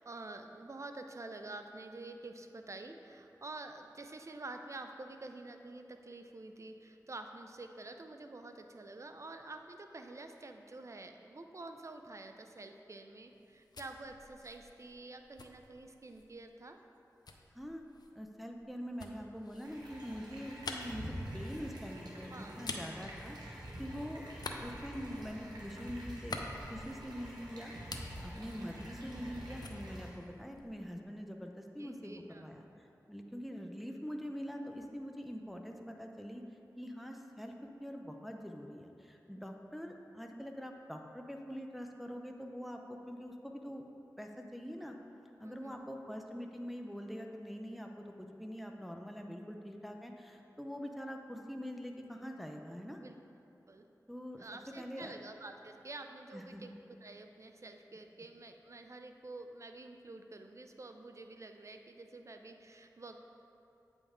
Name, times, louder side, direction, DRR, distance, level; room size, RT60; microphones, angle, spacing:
voice 1, 0.0-16.8 22.3-22.6 31.8-32.6 45.4-45.7 53.0-53.1 53.7-53.9 54.4-63.2, right 2 dB, 45° right, 6 dB, 0.5 m, -48 dB
sound 1, 13.3-16.4 17.3-23.9 24.3-27.4 27.7-29.3 29.6-30.9, left 3 dB, 80° left, 0.5 m, -48 dB
voice 2, 18.1-21.1 21.3-24.2 24.6-32.7 33.1-36.4 36.8-37.5 37.8-43.8 44.2-44.9 45.4-53.0 54.1-54.4 54.8-55.1 56.3-56.6, equal, ahead, 2 dB, 0.6 m, -44 dB
sound 2, 19.6-30.1, right 1 dB, 80° right, 1.2 m, -47 dB
8.3 x 5.4 x 3.6 m, 2.8 s
cardioid pair, 45°, 7 cm